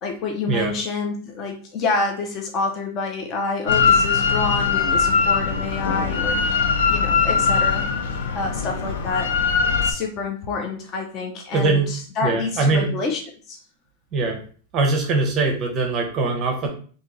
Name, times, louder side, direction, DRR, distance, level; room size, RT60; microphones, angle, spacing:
voice 1, 0.0-7.9 8.3-9.4 9.8-13.2 13.5-13.6, left 3 dB, 30° left, 1 dB, 0.5 m, -28 dB
Drill, 3.7-9.9, left 5 dB, 80° left, 0.6 m, -21 dB
voice 2, 11.5-11.9 12.2-12.9 14.1-14.4 14.7-16.7, right 3 dB, 25° right, 3 dB, 0.7 m, -21 dB
3.0 x 2.7 x 3.8 m, 0.43 s
supercardioid pair, 165°, 0 cm